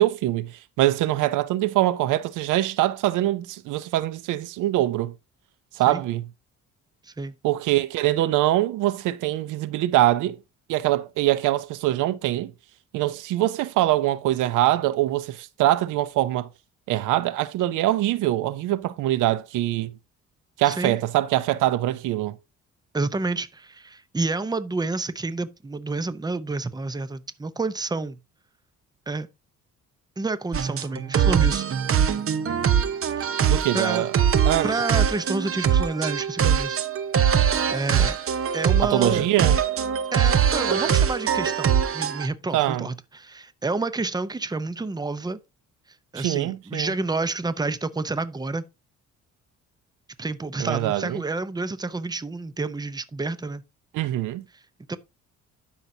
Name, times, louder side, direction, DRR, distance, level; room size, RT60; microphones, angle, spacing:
voice 1, 0.0-5.1 5.8-6.3 7.4-10.4 10.7-12.5 12.9-16.5 16.9-19.9 20.6-22.4 33.5-34.1 34.4-34.7 38.8-39.6 42.5-42.9 46.2-46.9 50.6-51.2 53.9-54.4, right 15 dB, 90° right, 0.6 m, -23 dB
voice 2, 20.6-21.0 22.9-28.2 29.1-29.3 30.2-31.6 33.2-34.1 34.6-36.8 37.7-38.2 38.5-39.3 40.1-45.4 46.1-48.6 50.2-53.6 54.9-55.0, right 3 dB, 15° right, 0.7 m, -29 dB
sound 1, 30.5-42.3, right 8 dB, 45° right, 0.9 m, -22 dB
12.0 x 5.7 x 2.7 m
cardioid pair, 90°, 30 cm